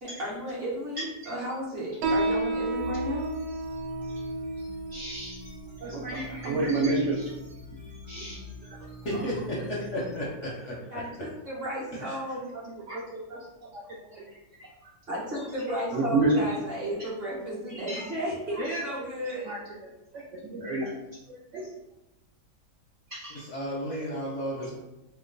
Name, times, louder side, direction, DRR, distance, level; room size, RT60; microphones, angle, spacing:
voice 1, 0.0-3.4 10.9-12.5 15.1-19.5, equal, 45° right, -7 dB, 1.0 m, -34 dB
Piano, 2.0-9.1, right 2 dB, 90° right, 1.2 m, -33 dB
sound 1, 2.8-10.2, left 4 dB, 30° right, 0.3 m, -44 dB
voice 2, 4.9-5.4 5.8-7.3 8.1-8.4 12.7-13.4 13.7-13.8 14.1-14.2 14.6-14.7 15.9-16.3 17.9-18.0 18.6-19.1 19.5-19.6 20.4-20.9 21.3-21.6 23.1-23.4, right 3 dB, 70° right, -4 dB, 0.7 m, -30 dB
voice 3, 9.0-10.8 11.9-12.2 23.3-24.8, equal, 65° left, -4 dB, 0.7 m, -33 dB
3.0 x 2.2 x 3.7 m, 0.92 s
omnidirectional pair, 1.8 m